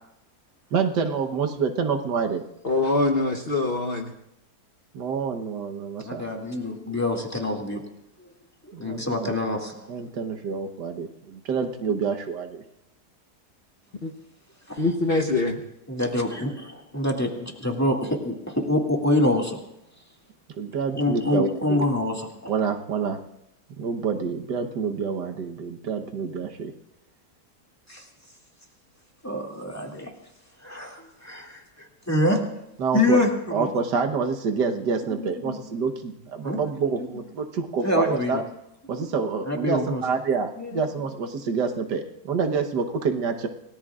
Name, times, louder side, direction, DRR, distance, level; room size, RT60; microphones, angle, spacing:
voice 1, 0.7-2.5 4.9-6.2 8.7-9.3 9.9-12.6 20.6-21.8 22.5-23.2 23.8-26.7 32.8-33.2 33.5-38.4 38.9-43.5, right 5 dB, 80° right, 5 dB, 1.7 m, -27 dB
voice 2, 2.6-4.1 14.0-14.1 14.8-15.6, left 2 dB, 40° left, 3 dB, 1.1 m, -23 dB
voice 3, 6.0-7.8 8.2-8.3 8.6-9.8 14.7-14.8 15.9-19.6 20.9-22.5 27.9-28.0 29.2-30.1 30.6-32.4 32.9-33.3 33.6-33.7 35.2-35.6 36.4-36.6 37.0-37.1 37.8-38.4 39.5-40.0 40.6-40.8, left 1 dB, 10° left, 0 dB, 2.1 m, -26 dB
28.0 x 18.0 x 2.4 m, 0.82 s
omnidirectional pair, 1.8 m